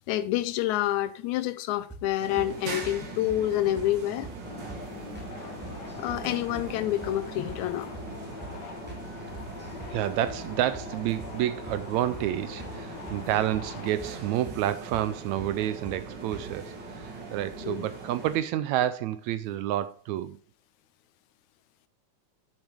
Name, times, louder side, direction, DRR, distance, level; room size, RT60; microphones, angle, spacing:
voice 1, 0.1-4.3 6.0-7.9 17.6-17.9, left 13 dB, 80° left, 1.9 m, -28 dB
sound 1, 1.9-2.5 2.8-3.0 3.3-3.4 3.8-3.9 4.2-4.4 4.7-4.8 5.1-5.3 5.6-6.2 6.5-6.7 7.0-7.2 7.5-7.6 7.9-8.1 8.4-8.6 8.9-9.0 9.3-10.0 10.3-10.4 10.7-10.9 11.2-11.4 11.7-11.8 12.1-12.3 12.6-12.8 13.1-13.7 14.0-14.1 14.4-14.6 14.9-15.1 15.4-15.5 15.8-16.0 16.3-16.5, right 2 dB, 5° right, 1.6 m, -43 dB
sound 2, 2.2-18.4, right 3 dB, 40° right, 1.9 m, -41 dB
sound 3, 4.4-13.9, left 5 dB, 65° left, 1.1 m, -43 dB
voice 2, 9.9-20.4, right 12 dB, 80° right, 1.8 m, -29 dB
8.1 x 7.0 x 3.5 m
omnidirectional pair, 3.5 m